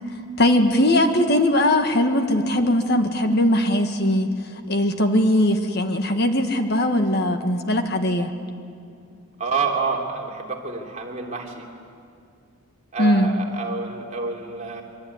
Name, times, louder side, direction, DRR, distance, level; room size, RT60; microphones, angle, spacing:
voice 1, 0.4-4.3 4.7-8.3 13.0-13.3, left 1 dB, 45° left, 6 dB, 1.7 m, -20 dB
voice 2, 9.4-11.6 12.9-14.8, right 4 dB, 35° right, -1 dB, 3.2 m, -28 dB
24.5 x 24.0 x 9.7 m, 2.4 s
head